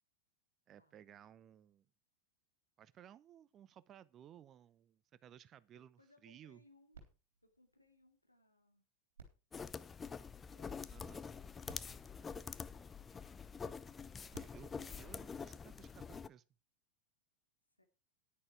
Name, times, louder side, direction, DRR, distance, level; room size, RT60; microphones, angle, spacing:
voice 1, 0.7-1.9 2.8-6.6 10.9-11.2 14.3-16.4, right 10 dB, 30° right, 0.7 m, -59 dB
voice 2, 5.7-7.0 7.4-8.8 17.8-17.9, left 2 dB, 85° left, 2.4 m, -69 dB
sound 1, 6.9-8.6 9.1-10.7 11.4-11.5 11.7-13.2 14.1-15.9 16.6-16.7, right 4 dB, 65° right, 3.5 m, -63 dB
sound 2, 9.5-16.3, left 5 dB, 15° left, 0.6 m, -46 dB
10.5 x 10.0 x 4.7 m
figure-of-eight pair, 90°, 0 cm